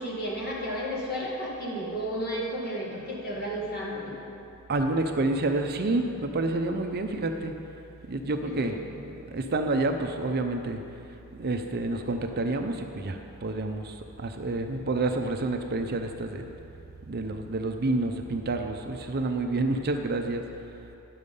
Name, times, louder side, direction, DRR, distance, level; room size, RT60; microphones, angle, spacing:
voice 1, 0.0-4.0 8.4-8.8, equal, 45° left, -4 dB, 2.0 m, -32 dB
voice 2, 4.7-7.5 8.1-10.8 11.4-16.5 17.1-20.5, right 2 dB, 45° right, 5 dB, 0.6 m, -29 dB
11.0 x 6.7 x 5.4 m, 2.7 s
head